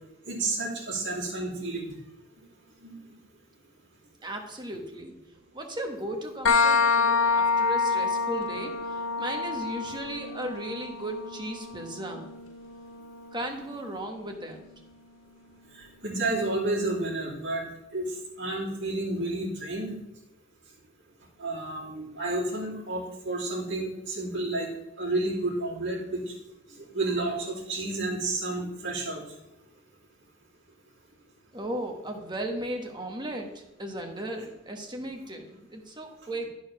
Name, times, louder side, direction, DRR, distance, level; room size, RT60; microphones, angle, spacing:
voice 1, 0.3-1.9 2.8-3.1 15.7-17.6 17.9-19.9 21.4-24.7 25.0-26.3 26.7-29.2, right 2 dB, 65° right, -3 dB, 2.7 m, -31 dB
voice 2, 4.2-5.2 5.5-12.3 13.3-14.6 31.5-36.4, right 1 dB, 25° right, 3 dB, 1.2 m, -36 dB
sound 1, 6.5-13.9, left 4 dB, 85° left, 0.7 m, -27 dB
10.0 x 4.8 x 5.8 m, 0.90 s
head